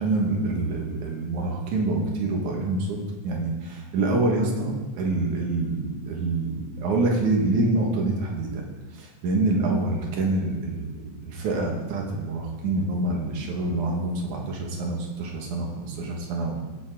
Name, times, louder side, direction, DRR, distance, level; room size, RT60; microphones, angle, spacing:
voice 1, 0.0-3.0 3.2-8.6 8.9-16.6, right 2 dB, 80° right, 0 dB, 3.0 m, -26 dB
17.0 x 7.3 x 3.7 m, 1.3 s
omnidirectional pair, 3.4 m